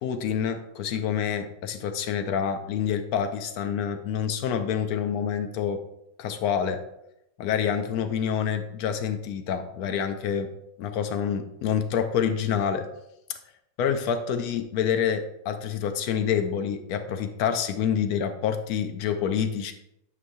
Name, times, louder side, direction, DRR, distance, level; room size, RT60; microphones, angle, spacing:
voice 1, 0.0-5.8 6.2-6.8 7.4-10.5 10.8-12.9 13.8-19.7, left 8 dB, 75° left, 8 dB, 0.8 m, -27 dB
8.5 x 4.9 x 2.6 m, 0.82 s
omnidirectional pair, 2.1 m